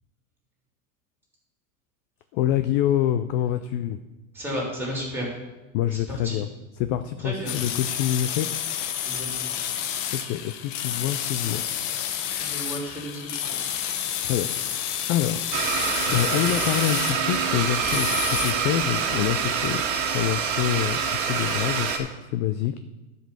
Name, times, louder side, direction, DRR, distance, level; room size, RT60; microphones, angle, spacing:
voice 1, 2.3-4.0 5.7-6.5 6.8-8.5 10.1-11.6 14.2-15.5 16.1-22.8, left 12 dB, 40° left, 10 dB, 0.4 m, -26 dB
voice 2, 4.3-5.3 5.9-6.4 7.2-7.5 9.0-9.5 12.4-13.7, equal, 5° right, -2 dB, 3.2 m, -33 dB
sound 1, 7.5-18.5, left 10 dB, 55° left, 1.1 m, -30 dB
Domestic sounds home sounds, 15.5-22.0, right 6 dB, 55° right, 1.7 m, -26 dB
11.0 x 5.3 x 6.7 m, 1.1 s
supercardioid pair, 150°, 42 cm